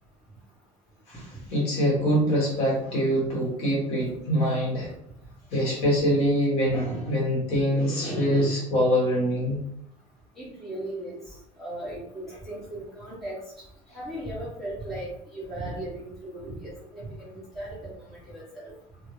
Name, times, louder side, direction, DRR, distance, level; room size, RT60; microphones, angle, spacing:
voice 1, 1.5-4.9 5.5-9.6, equal, 40° left, -3 dB, 1.2 m, -24 dB
voice 2, 10.4-11.2 11.6-13.4 13.9-18.7, right 1 dB, ahead, -10 dB, 1.1 m, -37 dB
2.8 x 2.6 x 3.1 m, 0.74 s
cardioid pair, 180°, 15 cm